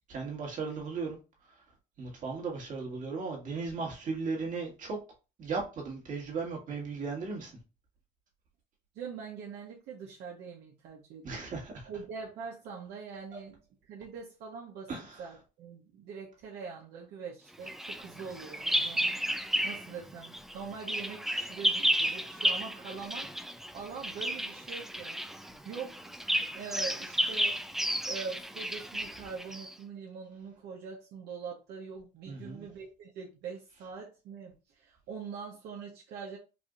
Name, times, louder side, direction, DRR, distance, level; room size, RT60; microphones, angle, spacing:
voice 1, 0.1-1.2 1.4-1.6 2.0-5.0 5.4-7.5 11.2-11.9 13.3-13.4 14.9-15.3 32.3-32.7, right 4 dB, 50° right, 1.8 m, -36 dB
voice 2, 8.9-11.5 11.8-13.6 13.9-14.9 15.2-19.2 19.6-25.2 25.6-26.2 26.5-27.6 28.0-36.4, right 5 dB, 80° right, 1.0 m, -43 dB
Bird vocalization bird call bird song, 17.7-19.9 20.2-29.7, equal, ahead, 0.3 m, -32 dB
4.8 x 2.6 x 2.4 m
cardioid pair, 110°, 17 cm